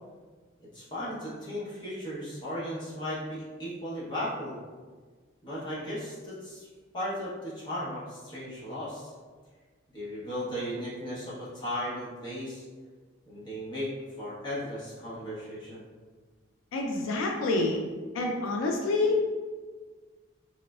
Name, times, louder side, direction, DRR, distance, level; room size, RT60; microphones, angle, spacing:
voice 1, 0.7-4.6 5.4-6.7 6.9-9.1 9.9-12.7 13.3-15.8, equal, 20° left, -9 dB, 0.8 m, -36 dB
voice 2, 16.7-17.8 18.1-19.2, left 3 dB, 85° left, 1 dB, 0.3 m, -27 dB
3.1 x 2.0 x 2.3 m, 1.4 s
head